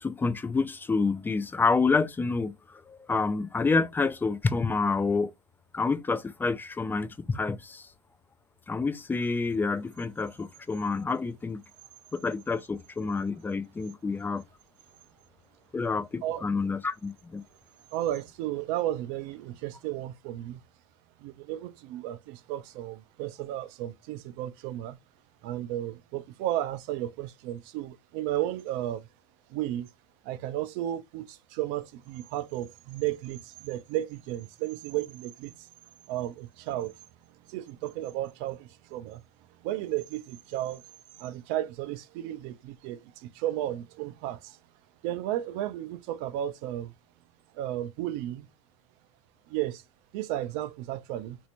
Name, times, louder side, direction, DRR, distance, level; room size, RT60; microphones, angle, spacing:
voice 1, 0.0-5.3 5.7-7.9 8.7-11.6 12.1-14.4 15.7-17.4, left 4 dB, 10° left, 0.4 m, -28 dB
voice 2, 17.9-20.6 21.2-25.0 25.4-29.0 29.5-29.9 30.2-35.7 36.1-36.9 37.5-39.2 39.6-40.8 41.2-44.6 45.0-46.9 47.5-48.5 49.5-49.8 50.1-51.4, right 13 dB, 55° right, 0.5 m, -33 dB
3.1 x 2.7 x 2.9 m
hypercardioid pair, 90°, 17 cm